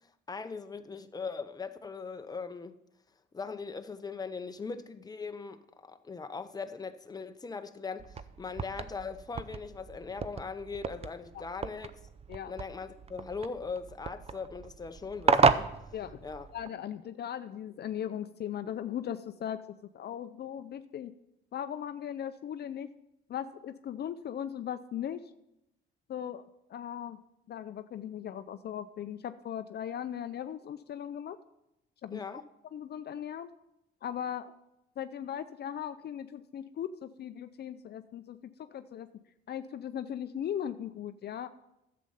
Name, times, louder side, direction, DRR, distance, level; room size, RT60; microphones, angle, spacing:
voice 1, 0.3-2.8 3.3-12.0 12.5-15.7 16.2-16.5 32.1-32.4, left 4 dB, 20° left, 0.7 m, -40 dB
sound 1, 8.0-16.7, right 5 dB, 30° right, 0.5 m, -32 dB
voice 2, 16.5-19.6 19.9-21.1 21.5-22.9 23.3-25.2 26.1-26.4 26.7-27.2 27.5-31.4 32.0-32.4 32.7-33.5 34.0-34.5 35.0-39.1 39.5-41.5, left 9 dB, 55° left, 0.5 m, -38 dB
11.0 x 7.7 x 5.5 m
cardioid pair, 90°, 20 cm